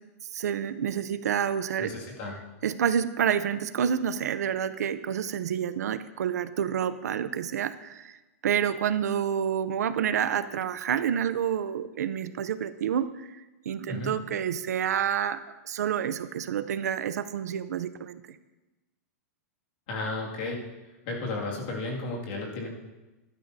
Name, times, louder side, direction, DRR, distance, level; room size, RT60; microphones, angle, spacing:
voice 1, 0.3-1.9 2.6-8.2 8.4-13.3 13.7-18.2, right 8 dB, 85° right, 13 dB, 0.6 m, -28 dB
voice 2, 1.8-2.4 13.9-14.1 19.9-20.6 21.1-22.7, left 2 dB, 35° left, -2 dB, 2.2 m, -33 dB
14.0 x 12.0 x 2.7 m, 1.1 s
supercardioid pair, 180°, 9 cm